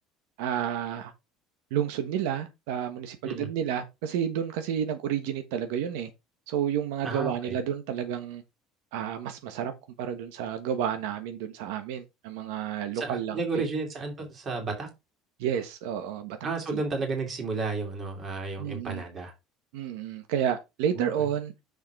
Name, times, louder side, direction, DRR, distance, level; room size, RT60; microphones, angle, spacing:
voice 1, 0.4-1.1 1.7-6.1 6.5-8.4 8.9-9.7 10.0-13.4 15.4-16.4 16.7-16.8 18.6-19.0 19.7-21.5, right 9 dB, 90° right, 1.2 m, -30 dB
voice 2, 7.0-7.6 12.9-14.9 16.4-19.3 20.9-21.3, right 3 dB, 30° right, 2.7 m, -32 dB
6.7 x 4.9 x 4.8 m
cardioid pair, 165°, 0 cm